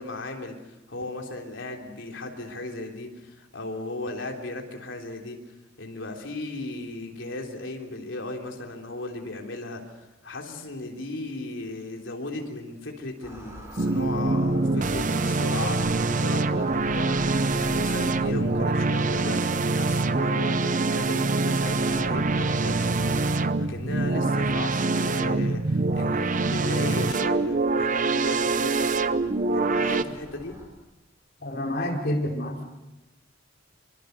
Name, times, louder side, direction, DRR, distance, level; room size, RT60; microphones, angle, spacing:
voice 1, 0.0-5.4 5.8-29.1 29.5-30.6, left 2 dB, 75° left, 2 dB, 3.5 m, -36 dB
sound 1, 13.2-30.7, equal, 15° right, 5.6 m, -45 dB
sound 2, 13.8-30.0, right 3 dB, 40° right, 0.8 m, -25 dB
voice 2, 31.4-32.6, left 1 dB, 55° left, 0 dB, 4.5 m, -28 dB
25.5 x 24.5 x 6.7 m, 1.0 s
head